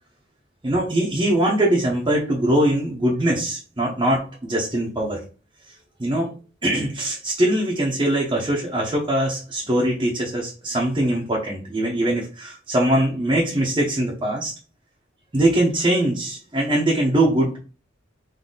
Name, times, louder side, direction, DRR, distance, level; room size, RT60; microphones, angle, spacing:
voice 1, 0.6-5.2 6.0-6.3 6.6-14.5 15.3-17.6, right 1 dB, 25° right, -4 dB, 0.8 m, -22 dB
3.9 x 2.7 x 3.8 m, 0.36 s
head